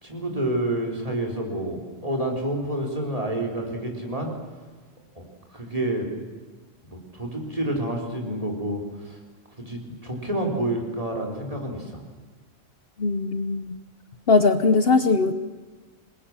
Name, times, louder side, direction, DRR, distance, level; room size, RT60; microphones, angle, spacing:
voice 1, 0.0-4.3 5.2-5.3 5.5-6.1 6.9-9.2 9.6-12.0, right 1 dB, 30° right, 1 dB, 4.2 m, -29 dB
voice 2, 13.0-13.8 14.3-15.3, left 4 dB, 55° left, 10 dB, 1.1 m, -20 dB
27.0 x 21.0 x 7.5 m, 1.3 s
omnidirectional pair, 1.3 m